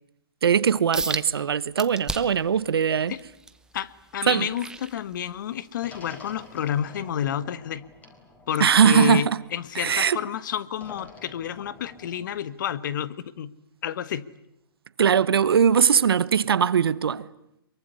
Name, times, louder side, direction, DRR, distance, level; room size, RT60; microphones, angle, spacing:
voice 1, 0.4-3.1 4.3-4.5 8.6-9.4 9.7-10.2 15.0-17.3, right 7 dB, 80° right, 1.1 m, -20 dB
sound 1, 0.9-1.3 1.8-2.5 3.0-5.5 6.0-6.2 6.8-6.9, right 3 dB, 5° right, 1.0 m, -33 dB
voice 2, 3.7-7.9 8.5-13.5 13.8-14.3, left 9 dB, 55° left, 1.3 m, -30 dB
sound 2, 5.8-9.9 10.7-12.4, left 3 dB, 10° left, 4.2 m, -49 dB
sound 3, 7.6-7.7 8.5-8.9 9.9-10.4, right 10 dB, 50° right, 2.6 m, -42 dB
23.5 x 23.0 x 9.8 m
hypercardioid pair, 145°, 12 cm